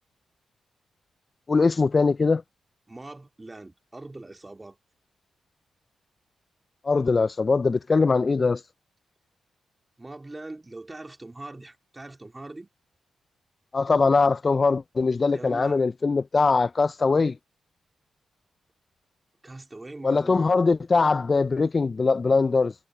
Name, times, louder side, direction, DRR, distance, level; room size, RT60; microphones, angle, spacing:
voice 1, 1.5-2.4 6.8-8.6 13.7-17.4 20.0-22.7, left 4 dB, 35° left, 0.3 m, -21 dB
voice 2, 2.9-4.8 10.0-12.7 15.3-15.8 19.4-20.5, right 2 dB, 20° right, 3.3 m, -42 dB
cardioid pair, 85°, 0 cm